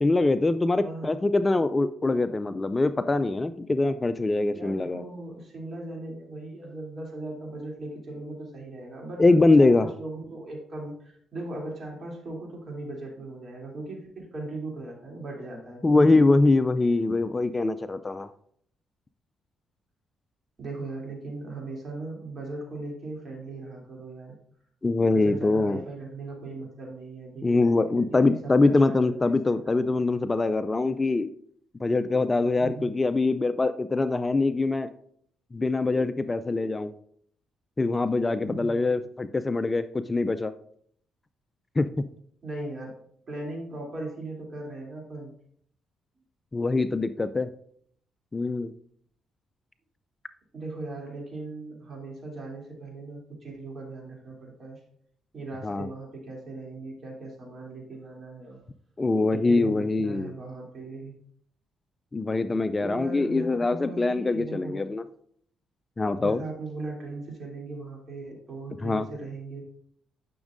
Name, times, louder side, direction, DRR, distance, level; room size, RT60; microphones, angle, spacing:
voice 1, 0.0-5.0 9.2-9.9 15.8-18.3 24.8-25.8 27.4-31.3 31.8-34.9 35.5-36.9 37.8-40.5 41.8-42.1 46.5-47.5 48.3-48.7 55.6-55.9 59.0-60.3 62.1-65.0 66.0-66.4 68.8-69.1, left 3 dB, 20° left, 11 dB, 0.3 m, -23 dB
voice 2, 4.5-16.0 20.6-24.3 25.1-29.8 32.6-32.9 38.4-38.8 42.4-42.9 43.3-45.3 50.5-54.8 55.3-58.6 59.3-61.2 62.8-64.8 66.2-69.6, right 2 dB, 45° right, -1 dB, 2.9 m, -38 dB
10.5 x 6.1 x 2.6 m, 0.64 s
cardioid pair, 90°, 0 cm